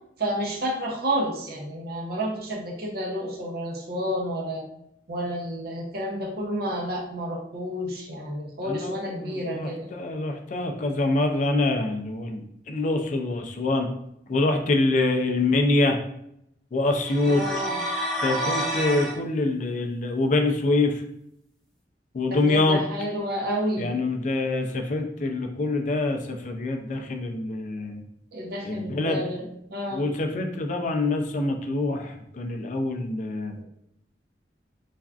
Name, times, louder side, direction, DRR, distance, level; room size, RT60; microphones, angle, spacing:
voice 1, 0.2-4.6 5.1-9.9 17.3-17.8 22.3-23.9 28.3-29.4 29.7-30.1, equal, 60° right, 0 dB, 0.6 m, -30 dB
voice 2, 8.7-13.9 14.3-16.0 16.7-17.6 18.2-21.0 22.1-22.8 23.8-28.0 28.6-29.2 29.9-33.5, left 2 dB, 45° left, 4 dB, 0.3 m, -25 dB
sound 1, 17.0-19.2, equal, 5° left, 0.6 m, -28 dB
3.4 x 2.4 x 2.3 m, 0.77 s
head